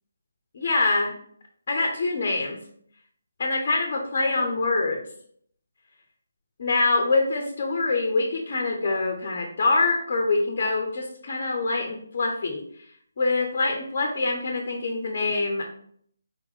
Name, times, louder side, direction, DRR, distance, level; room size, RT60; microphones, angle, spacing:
voice 1, 0.5-1.1 1.7-2.6 3.4-5.0 6.6-12.6 13.2-15.7, left 3 dB, 45° left, 2 dB, 0.8 m, -25 dB
4.4 x 3.0 x 3.8 m, 0.63 s
figure-of-eight pair, 155°, 0 cm